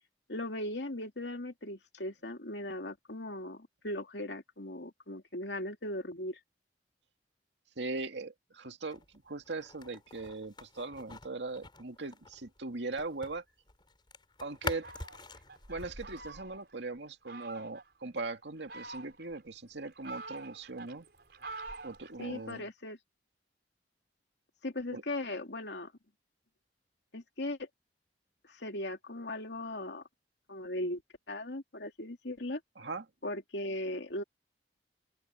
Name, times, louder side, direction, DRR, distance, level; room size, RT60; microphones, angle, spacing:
voice 1, 0.3-6.4 22.2-23.0 24.6-25.9 27.1-27.7 28.5-30.0 30.5-31.0 31.3-32.6 33.2-34.2, left 1 dB, 80° left, 2.8 m, -38 dB
voice 2, 7.8-13.4 14.4-14.9 15.7-21.1 21.8-22.7 24.9-25.0 32.8-33.0, right 3 dB, 85° right, 2.1 m, -40 dB
sound 1, 8.8-13.4 13.7-16.4, left 3 dB, 25° left, 5.4 m, -45 dB
Fowl, 14.7-16.8 17.3-17.9 18.5-19.4 19.8-22.6, right 3 dB, 65° right, 4.4 m, -47 dB
open air
head